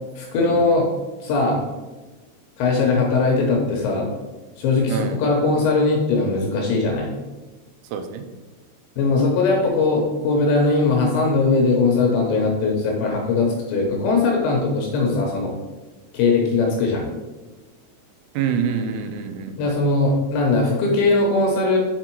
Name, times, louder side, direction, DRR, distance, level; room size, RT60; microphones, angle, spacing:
voice 1, 0.2-0.9 1.2-1.6 2.6-4.1 4.6-7.1 9.0-15.5 16.1-17.0 19.6-21.8, left 3 dB, 75° left, 0 dB, 2.7 m, -20 dB
voice 2, 4.9-5.2 7.9-8.2 18.3-19.6, right 6 dB, 90° right, 7 dB, 3.4 m, -26 dB
7.5 x 3.9 x 4.5 m, 1.2 s
omnidirectional pair, 5.8 m